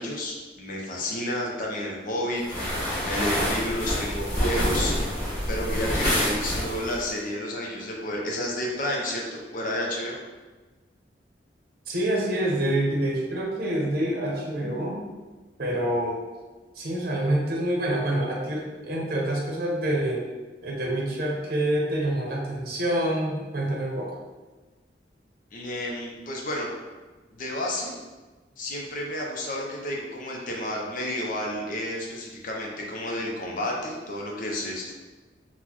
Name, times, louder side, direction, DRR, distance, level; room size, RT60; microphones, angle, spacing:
voice 1, 0.0-4.9 5.5-10.2 25.5-26.7 27.3-28.0 28.6-34.9, left 1 dB, 50° left, -1 dB, 0.6 m, -31 dB
sound 1, 2.4-7.0, equal, 10° left, 1.3 m, -27 dB
voice 2, 11.9-15.0 15.6-16.2 16.7-20.2 20.6-24.1, right 1 dB, 60° right, -2 dB, 0.7 m, -26 dB
4.0 x 2.1 x 2.9 m, 1.3 s
head